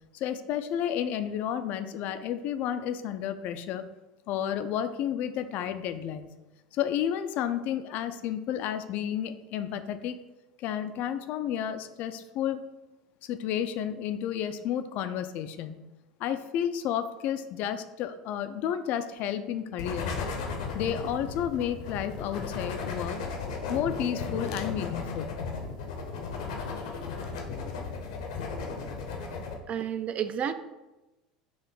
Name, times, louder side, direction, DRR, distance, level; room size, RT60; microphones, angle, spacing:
voice 1, 0.1-3.9 4.3-6.3 6.7-10.2 10.6-12.6 13.2-15.9 16.2-20.2 20.7-23.2 23.7-25.4, left 9 dB, 55° left, 11 dB, 0.3 m, -31 dB
sound 1, 19.8-29.5, left 4 dB, 75° left, 0.7 m, -35 dB
voice 2, 29.7-30.5, right 8 dB, 40° right, 11 dB, 0.3 m, -30 dB
4.6 x 2.6 x 3.7 m, 1.0 s
hypercardioid pair, 80°, 4 cm